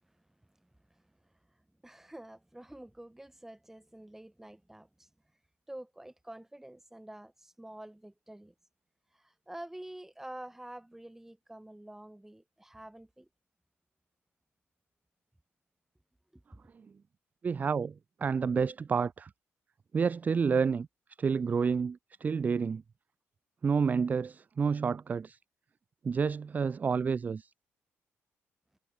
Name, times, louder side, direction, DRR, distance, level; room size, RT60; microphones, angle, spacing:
voice 1, 0.0-5.1 5.7-8.5 9.1-13.3 16.3-16.4 28.7-28.8, right 1 dB, 5° right, 7.3 m, -48 dB
voice 2, 17.4-17.9 18.2-19.3 19.9-20.9 21.2-22.8 23.6-25.4 26.0-27.5, right 5 dB, 35° right, 0.4 m, -29 dB
cardioid pair, 110°, 5 cm